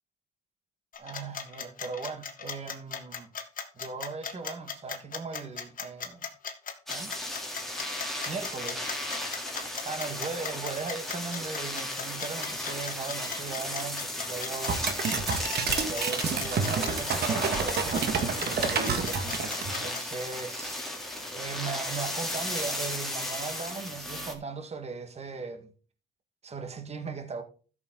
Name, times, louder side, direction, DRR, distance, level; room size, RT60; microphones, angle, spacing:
sound 1, 0.9-20.0, left 7 dB, 40° left, 2.4 m, -38 dB
voice 1, 1.0-3.3 3.8-6.2 6.9-7.1 8.3-8.9 9.9-14.8 15.9-19.4 19.8-25.7 26.4-27.4, right 4 dB, 30° right, 1.8 m, -38 dB
sound 2, 6.9-24.3, left 1 dB, ahead, 3.5 m, -35 dB
sound 3, 14.7-19.9, right 6 dB, 50° right, 2.1 m, -29 dB
13.5 x 7.1 x 4.0 m
cardioid pair, 125°, 21 cm